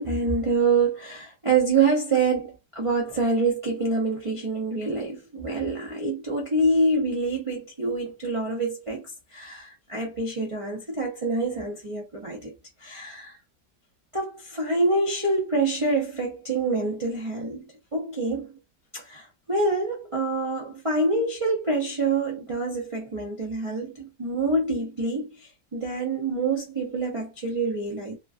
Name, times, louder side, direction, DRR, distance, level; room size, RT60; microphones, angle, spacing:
voice 1, 0.0-12.5 12.8-13.4 14.1-18.5 18.9-28.1, right 3 dB, 55° right, 0.3 m, -26 dB
3.0 x 2.3 x 2.5 m
omnidirectional pair, 1.8 m